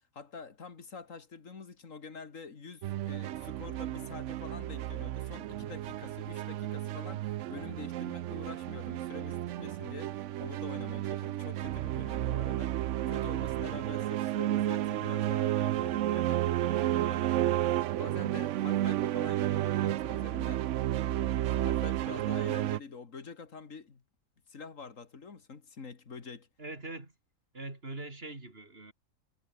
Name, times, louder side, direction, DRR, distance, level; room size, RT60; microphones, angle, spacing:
voice 1, 0.0-20.7 21.2-24.0 24.5-26.5, left 5 dB, 75° left, 2.4 m, -46 dB
sound 1, 2.8-22.8, right 13 dB, 70° right, 0.9 m, -32 dB
voice 2, 26.6-27.1 27.5-28.9, right 2 dB, 45° right, 3.9 m, -42 dB
omnidirectional pair, 1.4 m